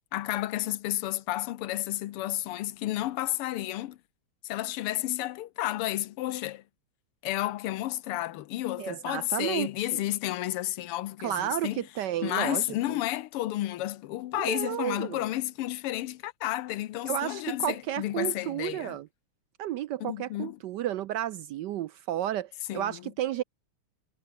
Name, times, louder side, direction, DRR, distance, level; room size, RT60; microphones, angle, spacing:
voice 1, 0.1-4.0 4.4-6.6 7.2-11.9 12.2-19.0 20.0-20.6 22.7-23.1, left 15 dB, 90° left, 1.8 m, -31 dB
voice 2, 8.8-10.0 11.2-12.7 14.4-15.2 17.1-19.1 19.6-23.4, right 12 dB, 80° right, 1.0 m, -32 dB
omnidirectional pair, 2.4 m